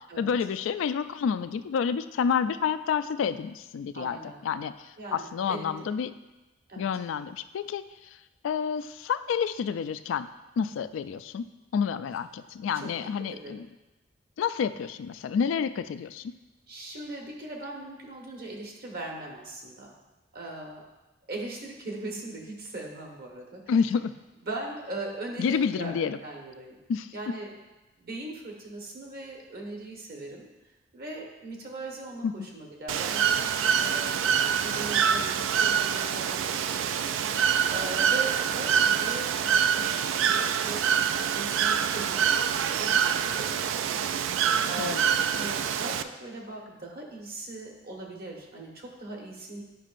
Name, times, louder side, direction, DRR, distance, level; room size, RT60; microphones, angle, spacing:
voice 1, 0.2-4.2 4.4-6.1 6.8-7.8 8.4-10.3 10.6-11.5 11.7-13.7 14.4-16.3 23.7-24.1 25.4-26.2 26.9-27.1 32.2-32.5 44.8-45.0, left 6 dB, 80° left, 13 dB, 0.3 m, -29 dB
voice 2, 3.9-4.4 5.0-5.8 6.7-6.9 12.7-13.6 16.7-19.9 20.3-20.8 21.3-23.6 24.5-26.8 27.1-27.5 28.0-30.5 30.9-36.8 37.7-40.9 41.3-44.0 44.3-49.6, right 2 dB, 55° right, -1 dB, 1.2 m, -40 dB
Bird / Water, 32.9-46.0, right 8 dB, 80° right, 0.3 m, -26 dB
9.0 x 5.3 x 2.5 m, 1.1 s
head